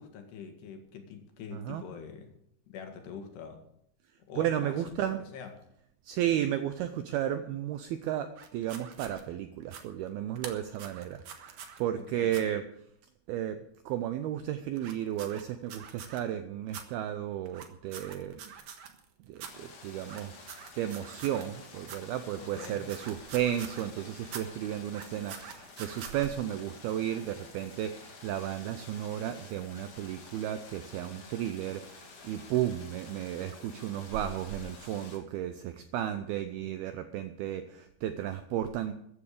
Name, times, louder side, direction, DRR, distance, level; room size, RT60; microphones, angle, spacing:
voice 1, 0.0-2.4 2.7-3.7 4.3-5.5 12.0-12.3 22.4-22.9, left 6 dB, 70° left, 5 dB, 3.6 m, -45 dB
voice 2, 1.5-1.8 4.4-5.2 6.0-12.7 13.3-13.6 13.9-18.5 19.2-20.3 20.8-38.9, right 11 dB, 90° right, 9 dB, 2.2 m, -33 dB
sound 1, 8.4-9.2 9.6-9.8 10.4-11.8 12.3-12.4 14.8-16.2 16.7-16.8 17.5-19.1 19.3-19.5 20.0-21.5 21.8-22.0 22.5-23.9 24.2-24.4 24.8-26.3, right 7 dB, 60° right, 2.2 m, -45 dB
sound 2, 19.5-35.2, left 4 dB, 45° left, 3.8 m, -51 dB
14.5 x 9.9 x 6.6 m, 0.73 s
omnidirectional pair, 5.3 m